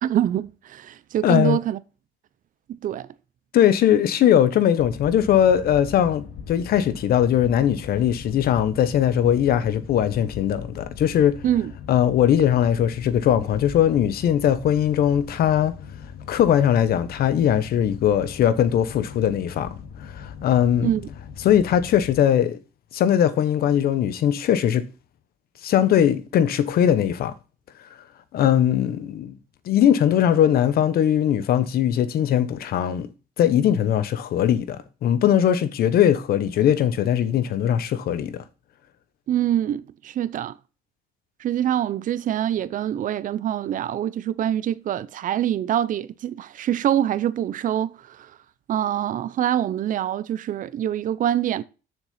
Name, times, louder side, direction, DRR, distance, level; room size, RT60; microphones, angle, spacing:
voice 1, 0.0-1.8 2.7-3.1 11.4-11.7 20.8-21.0 39.3-40.5 41.4-48.3 48.7-51.6, right 11 dB, 50° right, 0.7 m, -25 dB
voice 2, 1.2-1.6 3.5-11.3 11.9-15.7 16.3-19.7 20.0-20.9 21.4-22.6 22.9-24.8 25.6-27.3 28.3-29.4 29.6-33.1 33.4-38.4, left 10 dB, 65° left, 1.2 m, -20 dB
Boat Water vehicle, 4.8-22.2, left 6 dB, 80° left, 2.0 m, -40 dB
7.1 x 6.7 x 5.7 m
cardioid pair, 110°, 17 cm